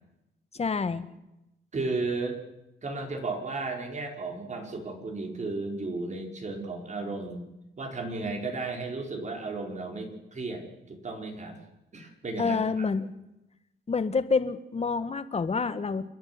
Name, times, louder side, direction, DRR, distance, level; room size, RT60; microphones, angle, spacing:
voice 1, 0.5-1.1 12.4-13.1 13.9-16.0, left 4 dB, 30° left, 11 dB, 1.7 m, -28 dB
voice 2, 1.7-2.4 2.8-7.5 7.8-11.6 11.9-12.9, right 3 dB, 35° right, 2 dB, 5.1 m, -34 dB
28.5 x 10.5 x 9.7 m, 0.91 s
cardioid pair, 90°, 20 cm